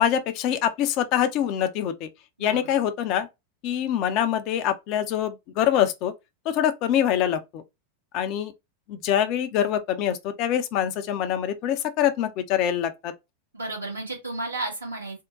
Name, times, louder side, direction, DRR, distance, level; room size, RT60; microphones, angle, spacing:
voice 1, 0.0-2.1 2.4-3.3 3.6-6.1 6.5-7.6 8.1-8.5 8.9-13.1, left 10 dB, 40° left, 0.5 m, -24 dB
voice 2, 13.5-15.2, right 2 dB, 75° right, 1.6 m, -32 dB
3.6 x 2.1 x 3.7 m
figure-of-eight pair, 90°, 0 cm